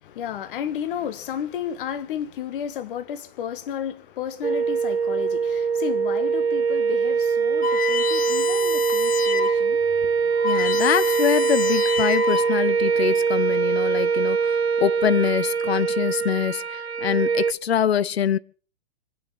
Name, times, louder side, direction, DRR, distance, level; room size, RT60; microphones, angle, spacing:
voice 1, 0.0-10.3, left 9 dB, 55° left, 1.8 m, -33 dB
sound 1, 4.4-17.5, right 6 dB, 85° right, 0.8 m, -23 dB
sound 2, 7.6-9.6 10.0-10.1 10.3-12.8, left 6 dB, 25° left, 1.4 m, -28 dB
voice 2, 10.4-18.4, left 9 dB, 75° left, 0.7 m, -24 dB
25.0 x 9.7 x 5.9 m
figure-of-eight pair, 105°, 31 cm